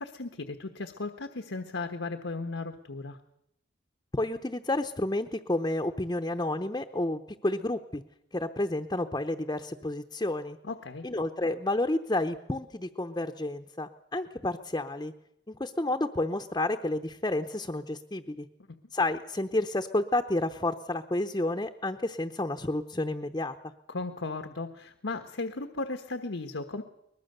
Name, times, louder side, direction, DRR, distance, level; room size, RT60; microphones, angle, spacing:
voice 1, 0.0-3.2 10.6-11.1 23.9-26.8, left 3 dB, 90° left, 7 dB, 1.2 m, -36 dB
voice 2, 4.1-8.0 8.3-10.6 11.0-15.1 15.5-18.5 18.9-23.6, left 2 dB, 20° left, 5 dB, 0.7 m, -30 dB
22.5 x 20.0 x 6.7 m, 0.78 s
head